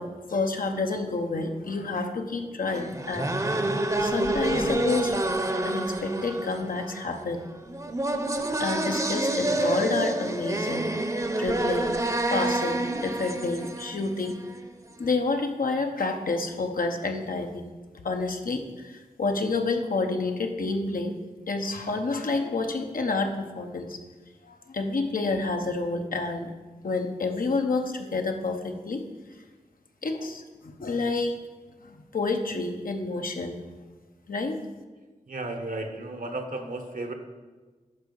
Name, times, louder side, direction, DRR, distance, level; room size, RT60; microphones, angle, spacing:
voice 1, 0.0-3.3 4.0-5.2 5.6-7.4 8.6-10.9 11.4-12.0 12.3-14.4 15.0-17.7 18.0-21.1 21.5-24.0 24.5-26.5 26.8-29.0 30.0-31.4 31.8-33.6 34.3-34.6, left 3 dB, 80° left, 4 dB, 1.0 m, -29 dB
sound 1, 2.7-14.6, right 2 dB, 25° right, 0.7 m, -28 dB
voice 2, 35.3-37.1, right 2 dB, 75° right, 5 dB, 1.2 m, -34 dB
11.0 x 4.8 x 5.4 m, 1.3 s
wide cardioid pair, 55°, 14 cm